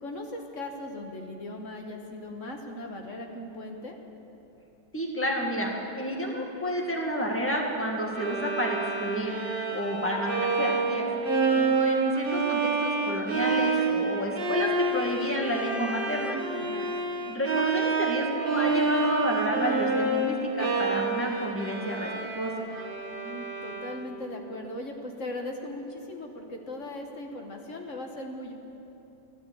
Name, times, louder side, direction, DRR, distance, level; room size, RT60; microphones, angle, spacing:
voice 1, 0.0-4.0 16.5-16.9 23.1-28.5, left 1 dB, 45° left, 2 dB, 1.3 m, -38 dB
voice 2, 4.9-9.3 9.7-11.1 11.5-16.4 17.2-22.5, equal, 5° left, -1 dB, 1.6 m, -30 dB
Bowed string instrument, 8.2-24.2, right 3 dB, 35° right, 1.0 m, -28 dB
12.5 x 12.0 x 8.3 m, 3.0 s
omnidirectional pair, 2.0 m